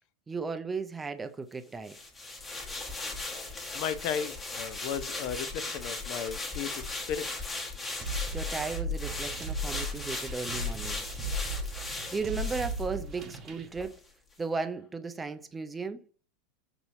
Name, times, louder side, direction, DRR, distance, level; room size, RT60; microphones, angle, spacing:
voice 1, 0.3-2.0 8.3-11.0 12.1-13.9 14.4-16.0, right 4 dB, 15° right, 0.5 m, -35 dB
sound 1, 1.9-13.4 13.8-13.9, left 2 dB, 20° left, 1.2 m, -38 dB
voice 2, 3.7-7.3, left 8 dB, 55° left, 0.5 m, -35 dB
sound 2, 8.0-13.7, equal, 35° right, 0.9 m, -36 dB
5.4 x 2.9 x 2.6 m
hypercardioid pair, 100°, 0 cm